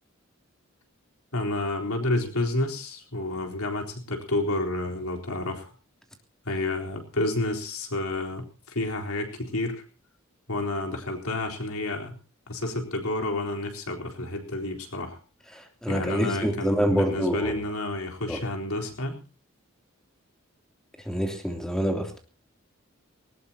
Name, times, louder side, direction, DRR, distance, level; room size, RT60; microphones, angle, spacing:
voice 1, 1.3-5.7 6.5-9.8 10.5-12.2 12.5-15.2 15.9-19.2, left 2 dB, 90° left, 2 dB, 4.1 m, -30 dB
voice 2, 15.5-17.5 18.3-18.4 21.0-22.2, equal, 5° left, 3 dB, 3.1 m, -26 dB
20.0 x 19.5 x 2.9 m, 0.34 s
head